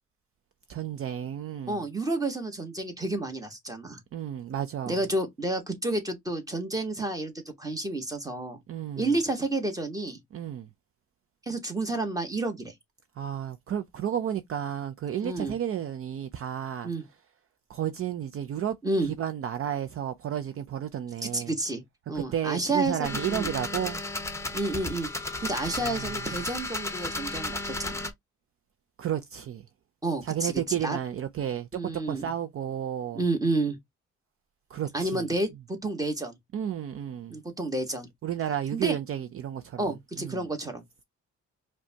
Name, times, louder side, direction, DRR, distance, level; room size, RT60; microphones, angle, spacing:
voice 1, 0.7-1.8 4.1-5.0 8.7-9.1 10.3-10.7 13.2-16.9 17.7-18.8 19.2-21.5 22.1-24.0 25.8-26.1 29.0-29.6 30.2-33.2 34.7-35.3 36.5-37.4 38.2-40.5, right 10 dB, 50° right, 0.5 m, -32 dB
voice 2, 1.7-4.0 4.8-8.6 9.0-10.2 11.5-12.7 15.2-15.5 16.8-17.0 18.8-19.1 21.2-21.8 22.1-23.5 24.5-25.1 25.4-28.1 30.0-31.0 31.7-32.3 33.1-33.8 34.9-36.3 37.3-38.1 38.7-39.0 39.8-41.0, right 2 dB, 10° right, 1.3 m, -30 dB
sound 1, 23.0-28.1, left 2 dB, 10° left, 0.8 m, -34 dB
4.9 x 2.3 x 2.8 m
cardioid pair, 90°, 30 cm